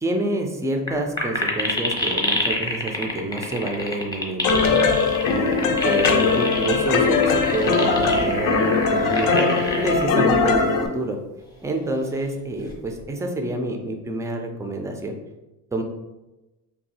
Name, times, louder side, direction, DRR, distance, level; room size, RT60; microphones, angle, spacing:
voice 1, 0.0-9.5 9.8-11.2 11.6-15.1 15.7-15.8, right 1 dB, 10° right, 4 dB, 0.4 m, -28 dB
sound 1, 0.9-1.0 1.2-10.1 10.7-10.8 12.6-13.0, left 2 dB, 10° left, 0.8 m, -27 dB
sound 2, 4.4-10.9, left 4 dB, 70° left, 0.5 m, -20 dB
2.6 x 2.3 x 4.0 m, 1.0 s
cardioid pair, 115°, 35 cm